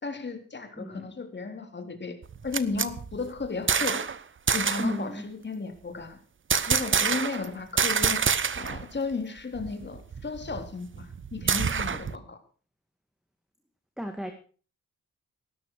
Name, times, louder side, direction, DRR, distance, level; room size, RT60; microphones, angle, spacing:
voice 1, 0.0-2.2 2.4-4.1 4.5-6.2 6.7-8.2 8.5-12.4, left 4 dB, 35° left, 6 dB, 3.6 m, -34 dB
sound 1, 2.2-4.2 4.5-5.0 6.5-7.5 7.8-8.8 9.1-9.2 9.6-12.2, right 6 dB, 35° right, 1.0 m, -27 dB
voice 2, 4.8-5.2 14.0-14.3, equal, ahead, 6 dB, 2.0 m, -34 dB
18.0 x 13.0 x 4.8 m, 0.40 s
wide cardioid pair, 120°, 33 cm